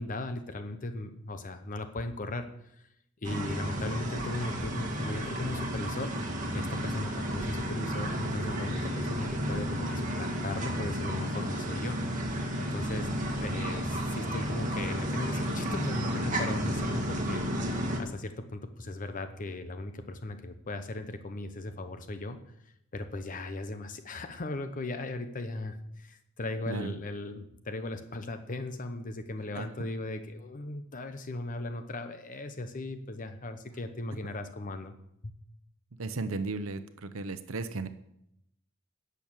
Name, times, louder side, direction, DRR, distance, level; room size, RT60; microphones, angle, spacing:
voice 1, 0.0-2.5 2.7-2.9 3.2-6.1 6.5-12.0 12.7-13.1 13.4-17.5 18.0-22.4 22.9-34.9, left 2 dB, 40° left, 8 dB, 0.8 m, -37 dB
sound 1, 3.2-18.0, equal, 40° right, 2.0 m, -32 dB
voice 2, 3.8-4.4 13.4-13.6 26.7-26.9 29.6-29.7 36.0-37.9, right 3 dB, 80° right, 11 dB, 0.8 m, -36 dB
10.5 x 7.0 x 7.3 m, 0.79 s
head